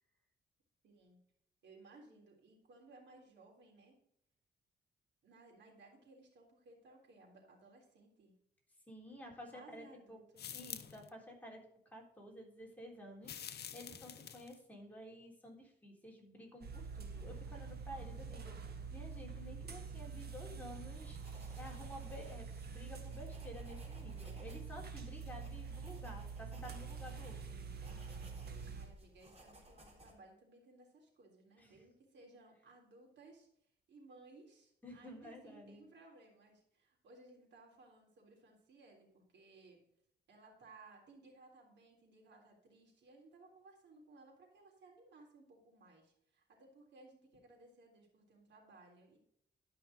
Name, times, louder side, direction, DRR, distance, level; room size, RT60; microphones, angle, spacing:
voice 1, 0.8-1.2 1.6-4.0 5.2-8.4 9.5-10.5 25.5-25.7 28.6-33.5 33.9-39.8 40.3-49.2, right 2 dB, 80° right, 0 dB, 3.7 m, -61 dB
voice 2, 8.9-10.2 10.5-27.6 31.6-31.7 34.8-35.9, equal, 10° left, -2 dB, 3.7 m, -52 dB
sound 1, 10.4-11.1 13.2-14.6, left 8 dB, 60° left, 0.8 m, -47 dB
sound 2, 16.6-28.9, right 5 dB, 60° right, 1.8 m, -46 dB
sound 3, 21.2-30.1, equal, 35° right, 3.7 m, -60 dB
12.0 x 5.8 x 5.1 m, 0.72 s
cardioid pair, 90°, 18 cm